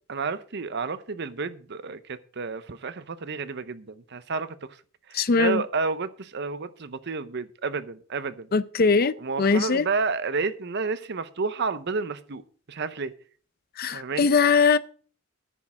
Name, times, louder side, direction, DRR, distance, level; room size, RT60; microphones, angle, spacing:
voice 1, 0.1-4.5 5.1-8.5 9.2-12.4 12.7-13.1 13.9-14.3, right 4 dB, 55° right, 0.7 m, -30 dB
voice 2, 5.1-5.6 8.5-9.9 13.8-14.8, left 4 dB, 50° left, 0.6 m, -21 dB
10.0 x 6.6 x 7.1 m
head